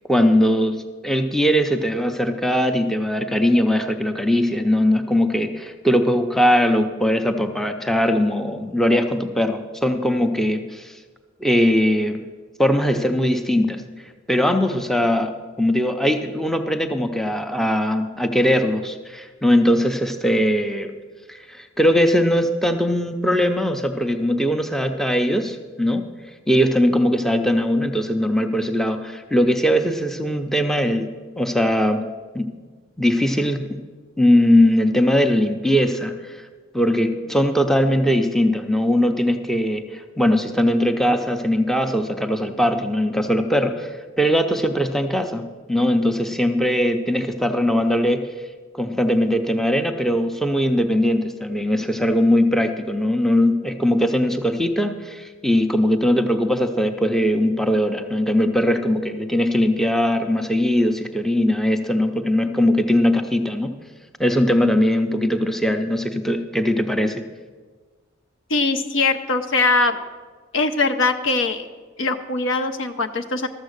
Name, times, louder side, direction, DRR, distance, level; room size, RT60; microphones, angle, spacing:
voice 1, 0.1-10.9 11.4-12.2 12.6-13.8 14.3-15.3 15.6-20.9 21.3-26.0 26.5-31.1 31.4-32.0 32.3-32.5 33.0-33.8 34.2-36.4 36.7-43.9 44.2-48.2 48.8-63.7 64.2-67.3, equal, ahead, 7 dB, 0.6 m, -20 dB
voice 2, 68.5-70.0 70.5-71.7 72.0-73.5, left 3 dB, 70° left, 9 dB, 0.7 m, -21 dB
13.0 x 7.3 x 6.5 m, 1.4 s
head